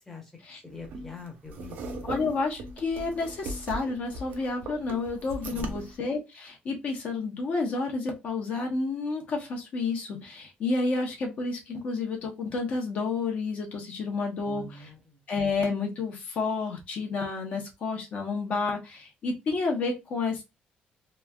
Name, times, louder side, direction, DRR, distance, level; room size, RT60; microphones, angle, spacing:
voice 1, 0.6-2.2 5.5-5.8 14.4-15.2, left 3 dB, 10° left, 0 dB, 0.8 m, -44 dB
sound 1, 0.8-6.0, right 2 dB, 55° right, 0.6 m, -39 dB
voice 2, 2.0-14.9 15.3-20.4, left 3 dB, 45° left, 1 dB, 0.8 m, -30 dB
3.1 x 2.4 x 2.2 m, 0.23 s
cardioid pair, 180°, 3 cm